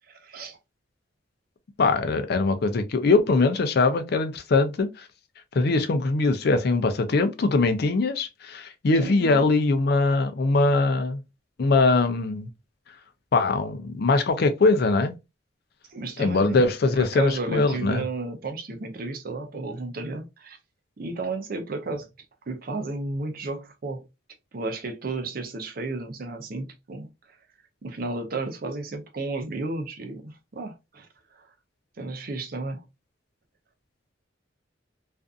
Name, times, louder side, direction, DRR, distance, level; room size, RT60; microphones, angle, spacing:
voice 1, 0.1-0.6 8.9-9.5 15.9-20.6 21.0-22.1 22.5-24.0 24.5-27.1 27.8-31.1 31.3-31.4 32.0-32.8, right 3 dB, 50° right, 0.5 m, -33 dB
voice 2, 1.8-5.1 5.5-11.2 11.6-12.5 13.3-15.1 16.2-18.0, left 3 dB, 55° left, 0.4 m, -22 dB
2.5 x 2.4 x 2.3 m
head